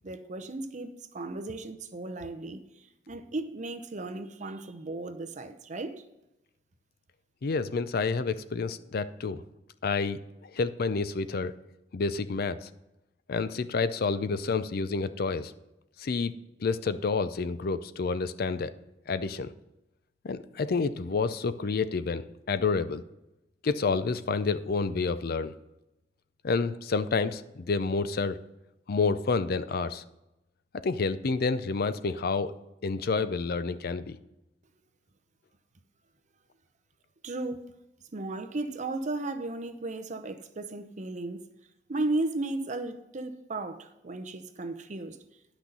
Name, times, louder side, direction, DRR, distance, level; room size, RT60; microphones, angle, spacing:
voice 1, 0.0-6.0 37.2-37.7 38.1-41.4 41.9-45.2, right 2 dB, 40° right, 0.7 m, -35 dB
voice 2, 7.4-9.4 9.8-11.5 11.9-12.7 13.3-15.5 16.0-16.3 16.6-18.7 19.1-19.5 20.2-23.0 23.6-25.5 26.4-28.4 28.9-30.0 30.8-32.5 32.8-34.2, left 4 dB, 55° left, 0.5 m, -29 dB
10.0 x 6.0 x 5.4 m
head